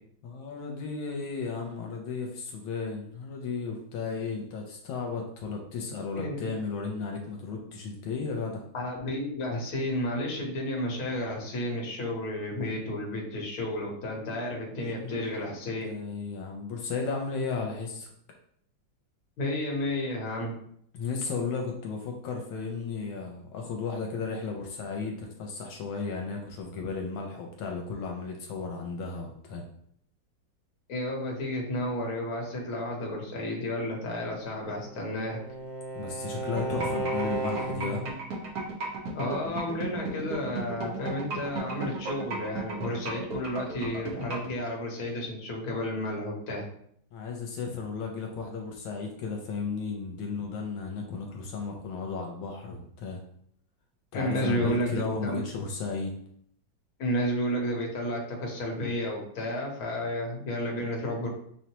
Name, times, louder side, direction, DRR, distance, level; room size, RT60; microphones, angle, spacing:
voice 1, 0.2-8.6 15.0-15.3 15.8-18.1 20.9-29.6 35.9-38.0 47.1-53.2 54.1-56.1, left 4 dB, 80° left, 1 dB, 1.4 m, -34 dB
voice 2, 8.7-15.9 19.4-20.5 30.9-35.4 39.1-46.6 54.1-55.4 57.0-61.3, left 1 dB, 55° left, -1 dB, 1.3 m, -32 dB
Bowed string instrument, 34.6-38.2, right 2 dB, 80° right, 2.2 m, -34 dB
sound 1, 36.6-44.5, right 4 dB, 55° right, 1.4 m, -34 dB
6.3 x 2.1 x 2.9 m, 0.67 s
omnidirectional pair, 2.3 m